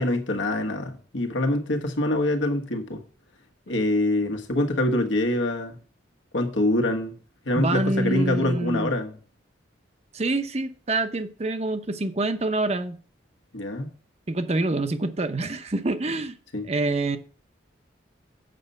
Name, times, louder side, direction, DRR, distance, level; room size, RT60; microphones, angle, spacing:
voice 1, 0.0-3.0 3.7-5.8 6.3-7.2 7.4-9.2 13.5-13.9 16.5-16.7, left 1 dB, 80° left, 1.4 m, -25 dB
voice 2, 7.5-8.9 10.1-13.0 14.3-16.4 16.6-17.2, right 2 dB, 35° right, 0.8 m, -26 dB
7.7 x 5.5 x 6.6 m
head